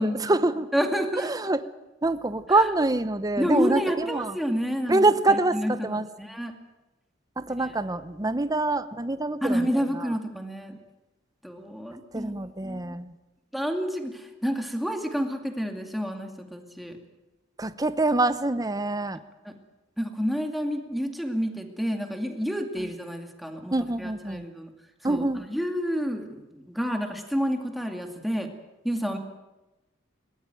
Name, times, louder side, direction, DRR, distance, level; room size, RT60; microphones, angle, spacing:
voice 1, 0.0-0.7 1.2-1.7 2.0-4.4 4.9-6.1 7.4-10.2 12.1-13.1 17.6-19.2 22.8-22.9 23.7-24.5 25.0-25.5, right 2 dB, 20° right, 12 dB, 0.8 m, -25 dB
voice 2, 0.7-1.3 3.4-5.0 5.3-6.5 8.2-8.4 9.4-10.8 11.4-12.3 12.6-13.0 13.5-16.9 19.5-19.6 20.0-23.7 24.0-24.7 25.1-28.5 28.8-29.2, equal, ahead, 3 dB, 2.4 m, -29 dB
21.5 x 19.5 x 9.1 m, 1.0 s
head